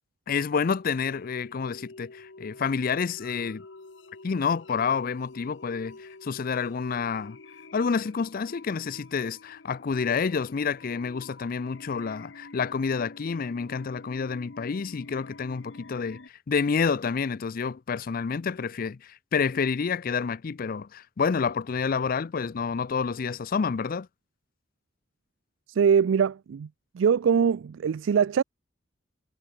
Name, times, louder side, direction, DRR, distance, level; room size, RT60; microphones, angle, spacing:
voice 1, 0.3-3.6 4.2-7.4 7.7-24.1, left 5 dB, 45° left, 0.4 m, -29 dB
sound 1, 1.0-16.3, left 3 dB, 70° left, 1.2 m, -48 dB
voice 2, 25.7-26.7 26.9-28.4, right 7 dB, 80° right, 0.4 m, -22 dB
head